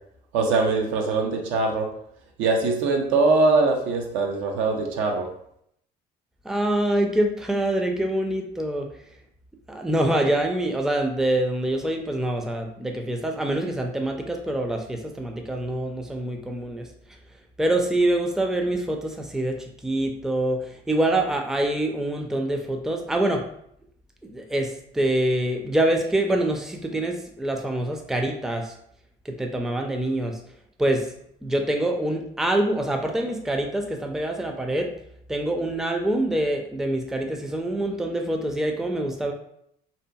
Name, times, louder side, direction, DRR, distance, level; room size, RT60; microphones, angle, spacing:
voice 1, 0.3-1.9 2.4-5.3, right 3 dB, 70° right, 2 dB, 0.5 m, -22 dB
voice 2, 6.4-8.9 9.7-16.9 17.6-23.4 24.2-28.7 29.2-30.4 30.8-31.1 31.4-34.9 35.3-39.3, right 1 dB, ahead, 3 dB, 0.4 m, -25 dB
2.7 x 2.5 x 2.2 m, 0.71 s
hypercardioid pair, 55°, 21 cm